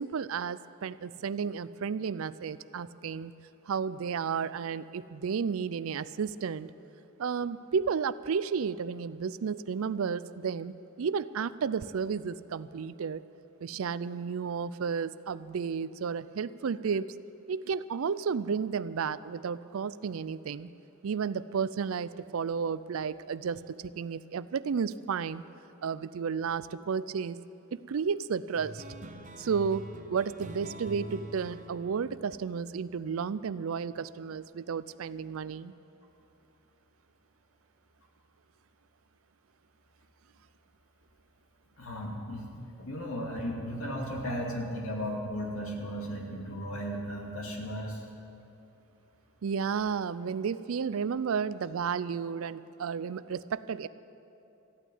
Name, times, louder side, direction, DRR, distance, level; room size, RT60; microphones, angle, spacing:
voice 1, 0.0-3.3 3.7-6.7 7.2-13.2 13.6-17.1 17.5-20.7 21.0-25.4 25.8-27.4 27.7-28.8 29.4-29.8 30.1-35.7 49.4-53.9, right 6 dB, 75° right, 16 dB, 0.4 m, -32 dB
sound 1, 28.6-33.5, right 2 dB, 35° right, 0.8 m, -46 dB
voice 2, 41.8-42.5 42.8-48.0, equal, 75° left, -1 dB, 2.5 m, -35 dB
14.0 x 9.2 x 9.3 m, 2.8 s
head